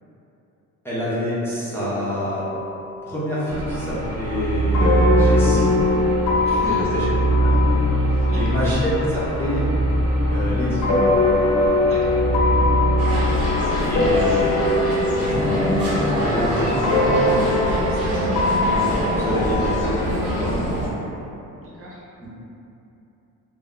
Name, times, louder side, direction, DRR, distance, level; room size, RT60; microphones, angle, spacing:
voice 1, 0.8-2.4 3.1-5.7 6.7-7.1 7.4-7.6 8.1-9.7 10.3-10.8 13.9-14.7 15.1-20.8 22.2-22.3, left 1 dB, 10° left, -11 dB, 0.5 m, -27 dB
sound 1, 2.1-3.1 3.4-9.7 10.8-20.3, left 2 dB, 70° left, 0.6 m, -23 dB
sound 2, 3.5-14.3, right 1 dB, 85° right, 0.8 m, -22 dB
voice 2, 6.4-6.9 7.9-8.6 11.9-12.1 13.6-13.9 21.6-22.0, right 1 dB, 45° right, -6 dB, 0.6 m, -37 dB
sound 3, 13.0-20.9, equal, 70° right, 1.2 m, -25 dB
2.1 x 2.1 x 3.6 m, 2.9 s
cardioid pair, 140°, 31 cm